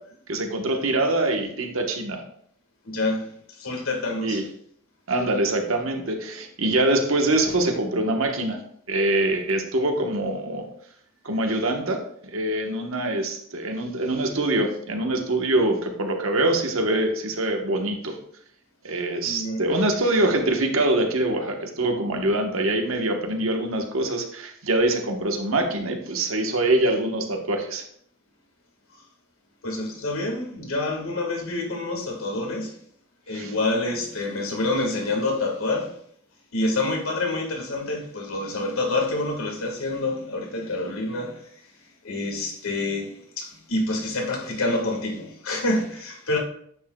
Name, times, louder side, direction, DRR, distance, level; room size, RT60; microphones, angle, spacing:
voice 1, 0.3-2.2 4.2-4.4 5.1-8.6 8.9-10.7 11.2-18.2 18.8-27.8 33.3-33.5, right 1 dB, 80° right, 1.1 m, -24 dB
voice 2, 2.8-4.4 19.2-19.6 29.6-32.8 33.3-35.9 36.5-41.6 42.0-46.4, left 2 dB, 85° left, 1.7 m, -27 dB
9.2 x 6.2 x 2.3 m
head